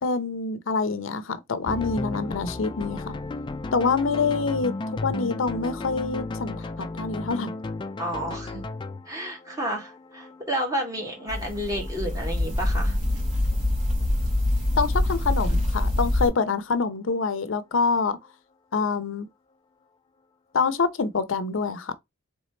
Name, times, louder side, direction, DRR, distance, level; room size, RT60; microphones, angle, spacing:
voice 1, 0.0-3.2 3.7-7.5 14.8-18.2 18.7-19.3 20.5-21.9, left 4 dB, 75° left, 0.6 m, -26 dB
sound 1, 1.7-14.3, left 3 dB, 25° left, 0.3 m, -35 dB
voice 2, 8.0-8.6 9.1-13.0, equal, 15° right, 1.6 m, -31 dB
sound 2, 11.3-16.3, left 1 dB, 40° right, 2.7 m, -25 dB
4.1 x 3.4 x 3.1 m
head